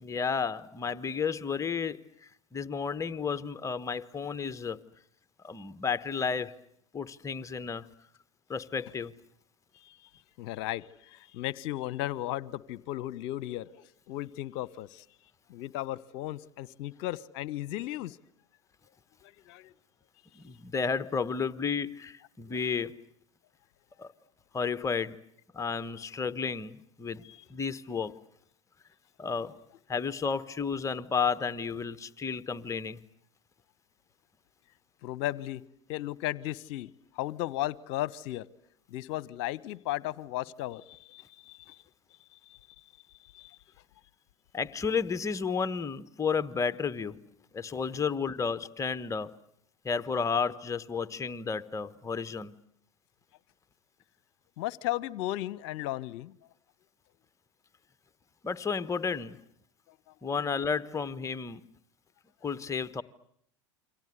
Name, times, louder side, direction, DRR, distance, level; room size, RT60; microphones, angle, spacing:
voice 1, 0.0-4.8 5.4-6.6 6.9-7.8 8.5-9.1 20.3-23.0 24.0-24.1 24.5-25.2 25.5-27.2 27.5-28.2 29.2-29.6 29.9-33.0 44.5-47.3 47.5-49.3 49.8-52.5 58.4-59.4 60.2-61.6 62.4-63.0, left 5 dB, 20° left, 1.3 m, -32 dB
voice 2, 9.7-10.1 10.4-15.0 15.5-18.2 19.2-19.7 27.2-27.4 35.0-35.6 35.9-36.9 37.1-38.4 38.9-41.8 42.5-42.6 43.3-43.6 54.6-56.3, left 15 dB, 55° left, 1.1 m, -35 dB
29.0 x 25.0 x 8.2 m
figure-of-eight pair, 80°, 16 cm